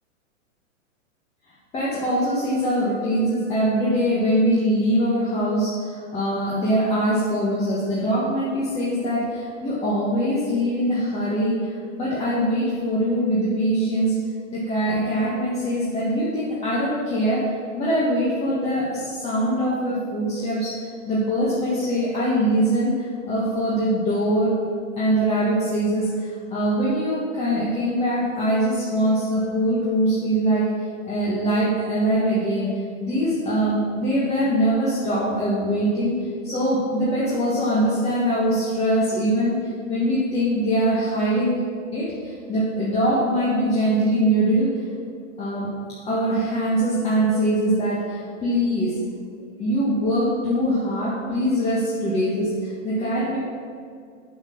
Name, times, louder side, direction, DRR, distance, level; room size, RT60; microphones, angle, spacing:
voice 1, 1.7-14.2 14.5-24.5 25.0-30.7 31.1-32.7 33.0-36.1 36.4-39.6 39.9-41.6 41.9-44.8 45.4-45.7 46.0-49.0 49.6-53.4, equal, 15° left, -8 dB, 1.7 m, -22 dB
7.9 x 6.6 x 6.4 m, 2.2 s
hypercardioid pair, 145°, 38 cm